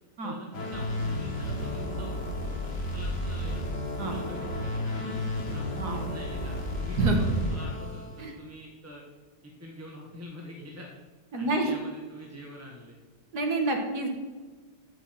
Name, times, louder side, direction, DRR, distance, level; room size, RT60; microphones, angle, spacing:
voice 1, 0.2-3.7 4.0-5.1 5.5-9.0 9.4-10.9 11.4-13.0, left 1 dB, 10° right, -1 dB, 1.2 m, -45 dB
sound 1, 0.5-8.3, left 1 dB, 65° left, 2.3 m, -32 dB
voice 2, 11.3-11.7 13.3-14.1, right 2 dB, 60° right, 3 dB, 2.1 m, -27 dB
15.5 x 5.6 x 5.9 m, 1.4 s
omnidirectional pair, 2.0 m